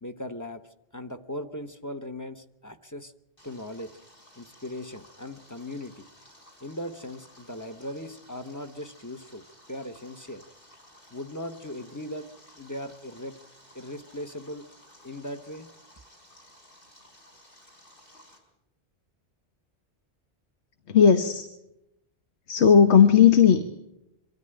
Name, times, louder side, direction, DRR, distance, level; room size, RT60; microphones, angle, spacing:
voice 1, 0.0-3.1 3.4-4.0 4.4-6.1 6.6-9.4 9.7-10.4 11.1-12.3 12.6-13.4 13.7-14.7 15.0-15.7, left 1 dB, 20° left, 8 dB, 0.9 m, -38 dB
Stream, 3.4-18.4, left 1 dB, 55° left, 5.1 m, -55 dB
voice 2, 20.9-21.5 22.5-23.7, left 7 dB, 80° left, 9 dB, 1.3 m, -16 dB
24.0 x 13.5 x 8.9 m, 0.87 s
omnidirectional pair, 1.1 m